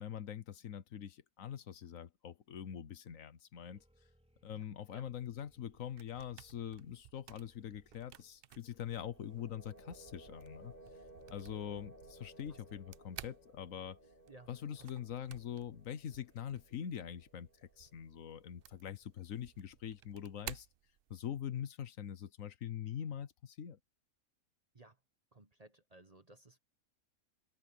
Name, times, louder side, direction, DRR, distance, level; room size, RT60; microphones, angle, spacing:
voice 1, 0.0-3.8 4.4-10.7 11.3-14.0 14.5-17.5 17.8-20.7 21.1-23.8, left 9 dB, 65° left, 1.4 m, -43 dB
sound 1, 3.7-9.5, equal, 5° right, 3.5 m, -71 dB
voice 2, 4.5-5.1 12.5-12.6 14.0-14.9 24.7-25.0 25.3-26.6, right 2 dB, 30° right, 1.1 m, -60 dB
sound 2, 5.6-21.5, right 11 dB, 70° right, 0.5 m, -56 dB
sound 3, 8.9-18.8, right 1 dB, 35° left, 4.0 m, -59 dB
omnidirectional pair, 1.5 m